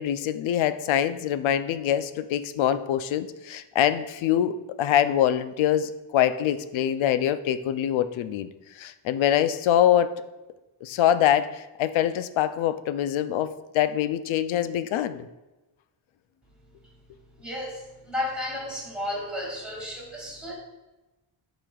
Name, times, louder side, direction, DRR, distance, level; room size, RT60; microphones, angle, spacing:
voice 1, 0.0-8.5 8.8-10.2 10.8-15.3, left 10 dB, 75° left, 12 dB, 0.5 m, -24 dB
voice 2, 17.4-20.5, left 1 dB, ahead, -4 dB, 2.0 m, -33 dB
10.5 x 5.1 x 2.3 m, 1.1 s
wide cardioid pair, 175°, 48 cm